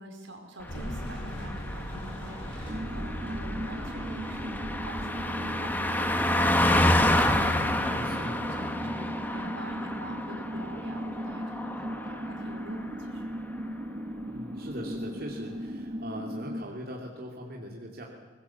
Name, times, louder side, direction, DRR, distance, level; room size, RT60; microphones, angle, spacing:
voice 1, 0.0-13.2, equal, 80° right, 3 dB, 4.9 m, -45 dB
sound 1, 0.7-5.7, equal, 30° left, 6.2 m, -39 dB
Car passing by, 0.7-12.6 12.9-13.2, left 1 dB, 10° left, 1.5 m, -29 dB
sound 2, 2.7-16.6, equal, 30° right, 0.8 m, -37 dB
voice 2, 7.9-8.5 8.8-8.9 14.2-18.0, equal, 50° right, -1 dB, 2.9 m, -41 dB
24.5 x 20.5 x 7.3 m, 1.5 s
head